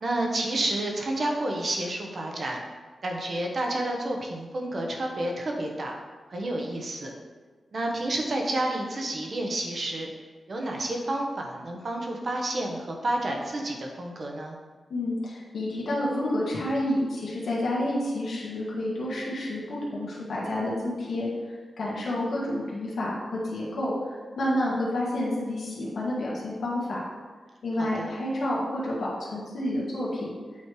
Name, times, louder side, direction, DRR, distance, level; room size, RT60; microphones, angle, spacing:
voice 1, 0.0-2.6 3.0-5.9 6.3-7.1 7.7-10.1 10.5-14.6 27.8-28.1, right 1 dB, 45° right, 0 dB, 1.0 m, -30 dB
voice 2, 14.9-21.3 21.8-23.2 23.4-27.0 27.6-30.3, left 1 dB, 75° left, -6 dB, 1.5 m, -29 dB
8.5 x 3.2 x 4.7 m, 1.4 s
wide cardioid pair, 120°, 0 cm